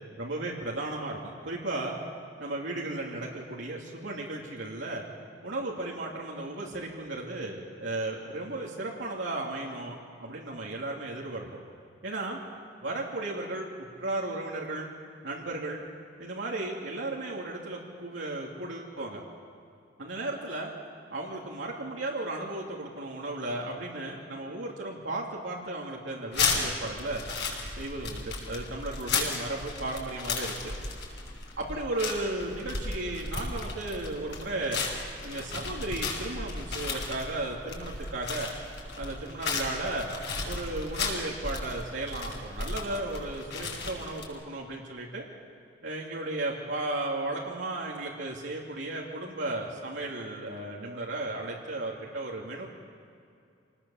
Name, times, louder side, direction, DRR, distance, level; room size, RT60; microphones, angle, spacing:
voice 1, 0.2-2.0 2.4-5.0 5.4-11.5 12.0-12.4 12.8-14.9 15.2-15.8 16.2-19.2 20.0-20.7 21.1-27.2 27.8-30.7 31.6-34.8 35.2-38.5 38.9-40.1 40.4-45.2 45.8-52.7, right 2 dB, 80° right, -3 dB, 2.8 m, -35 dB
sound 1, 26.3-44.3, left 4 dB, 65° left, 6.1 m, -35 dB
27.0 x 19.5 x 7.2 m, 2.4 s
head